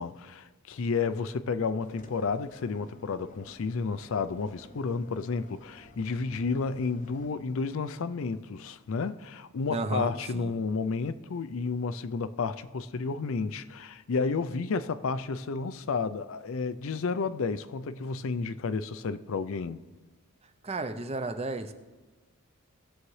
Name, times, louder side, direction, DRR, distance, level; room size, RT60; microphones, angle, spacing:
voice 1, 0.0-19.8, left 4 dB, 65° left, 0.4 m, -31 dB
sound 1, 1.8-7.3, left 2 dB, 35° left, 0.8 m, -53 dB
voice 2, 9.7-10.5 20.6-21.7, right 2 dB, 30° right, 0.6 m, -33 dB
18.5 x 7.2 x 3.2 m
head